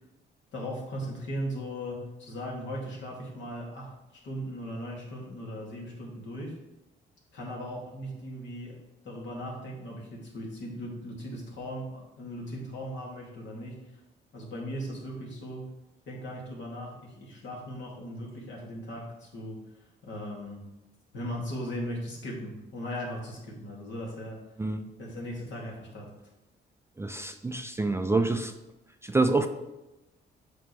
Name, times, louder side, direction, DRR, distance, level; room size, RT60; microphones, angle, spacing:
voice 1, 0.5-3.9 4.2-6.6 7.3-13.9 14.3-15.7 16.1-19.6 20.0-20.7 21.1-24.4 25.0-26.1, equal, 70° left, -3 dB, 2.2 m, -38 dB
voice 2, 27.0-28.5 29.0-29.5, right 3 dB, 15° right, 7 dB, 0.4 m, -27 dB
8.0 x 5.1 x 3.2 m, 0.98 s
cardioid pair, 90°, 20 cm